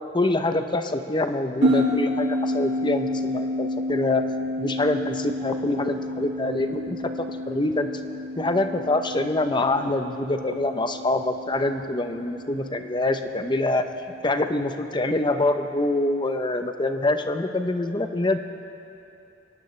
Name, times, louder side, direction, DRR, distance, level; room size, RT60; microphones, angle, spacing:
voice 1, 0.1-4.2 4.6-7.9 8.4-13.9 14.2-18.4, left 2 dB, 25° left, 7 dB, 0.7 m, -25 dB
sound 1, 1.6-14.4, left 1 dB, 90° right, 2.5 m, -30 dB
23.0 x 18.0 x 3.3 m, 2.7 s
head